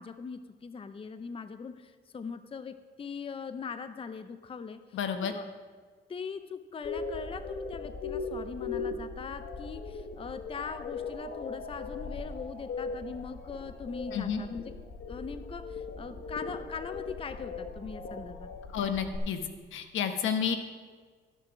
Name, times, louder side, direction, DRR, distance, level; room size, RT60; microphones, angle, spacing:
voice 1, 0.0-5.5 6.1-14.7 15.1-18.5, left 5 dB, 30° left, 11 dB, 0.6 m, -41 dB
voice 2, 4.9-5.3 14.1-14.4 18.7-19.4 19.7-20.6, left 7 dB, 80° left, 8 dB, 1.1 m, -30 dB
sound 1, 6.8-19.2, left 4 dB, 55° left, 1.3 m, -39 dB
13.0 x 6.5 x 6.0 m, 1.5 s
cardioid pair, 90°, 20 cm